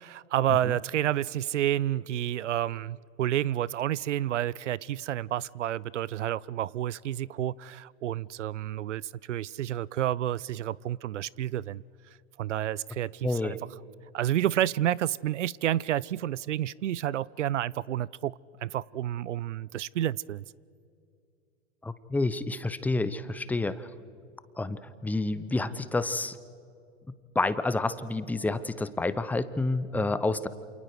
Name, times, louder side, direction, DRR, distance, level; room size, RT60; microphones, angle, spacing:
voice 1, 0.0-11.8 12.4-13.6 14.1-18.3 18.6-20.4, right 12 dB, 75° right, 24 dB, 0.6 m, -30 dB
voice 2, 13.2-13.6 21.8-23.9 24.6-26.4 27.1-30.5, left 2 dB, 5° left, 15 dB, 0.7 m, -29 dB
28.5 x 28.0 x 4.7 m, 2.4 s
hypercardioid pair, 105°, 37 cm